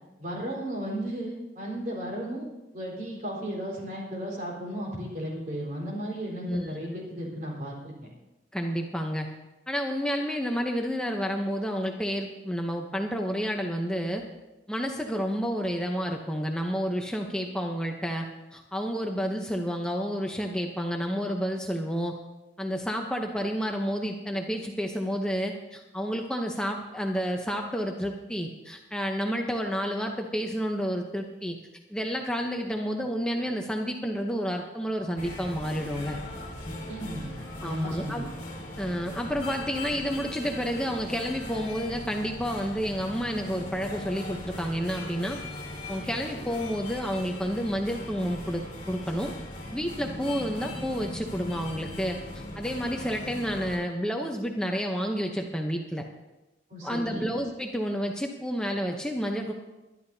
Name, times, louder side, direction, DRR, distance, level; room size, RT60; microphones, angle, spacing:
voice 1, 0.2-2.5 2.7-7.9 36.6-38.3 56.7-57.3, equal, 50° right, -2 dB, 4.2 m, -35 dB
voice 2, 8.5-9.3 9.7-14.2 14.7-22.1 22.6-31.6 31.9-36.2 37.6-38.3 38.8-45.4 45.9-49.3 49.7-52.2 52.6-56.0 56.8-59.5, equal, 5° left, 2 dB, 0.7 m, -30 dB
sound 1, 35.2-53.8, left 1 dB, 45° left, 3.1 m, -39 dB
22.0 x 11.5 x 2.8 m, 1.0 s
head